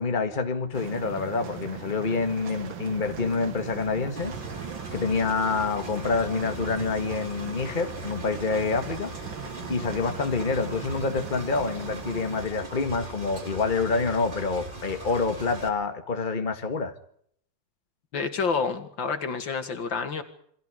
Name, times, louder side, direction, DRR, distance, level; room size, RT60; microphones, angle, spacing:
voice 1, 0.0-4.3 4.9-9.1 9.7-16.9, left 4 dB, 25° left, 1.8 m, -27 dB
sound 1, 0.7-12.5, right 8 dB, 85° right, 2.3 m, -40 dB
Engine, 4.2-15.7, right 2 dB, 25° right, 2.7 m, -40 dB
voice 2, 18.1-20.2, left 5 dB, 80° left, 3.0 m, -28 dB
28.5 x 23.5 x 5.1 m
omnidirectional pair, 2.0 m